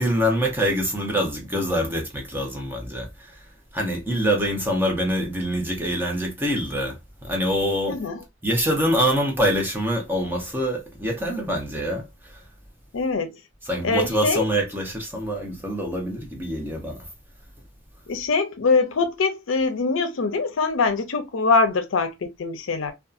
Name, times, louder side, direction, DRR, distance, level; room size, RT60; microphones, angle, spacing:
voice 1, 0.0-3.4 3.7-7.0 7.2-8.0 8.4-12.0 12.3-12.4 13.6-17.0, equal, 10° right, 0.7 m, -25 dB
voice 2, 7.9-8.2 12.9-13.3 13.8-14.4 18.1-22.9, left 4 dB, 80° left, 0.5 m, -23 dB
2.6 x 2.3 x 2.4 m
head